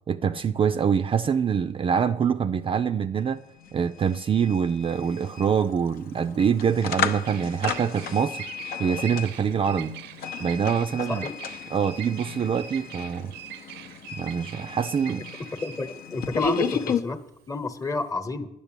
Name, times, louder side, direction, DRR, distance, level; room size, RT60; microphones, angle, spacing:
voice 1, 0.1-3.4 3.7-8.5 8.8-9.9 10.4-11.3 11.7-13.3 14.1-15.2, right 7 dB, 30° right, 0.4 m, -25 dB
sound 1, 3.2-3.3 3.5-17.0, left 6 dB, 65° left, 0.9 m, -34 dB
Bird vocalization bird call bird song, 4.8-18.1, right 13 dB, 85° right, 0.5 m, -43 dB
voice 2, 15.6-17.2 17.5-18.5, left 2 dB, 20° left, 1.1 m, -29 dB
10.5 x 6.7 x 9.0 m
cardioid pair, 110°, 17 cm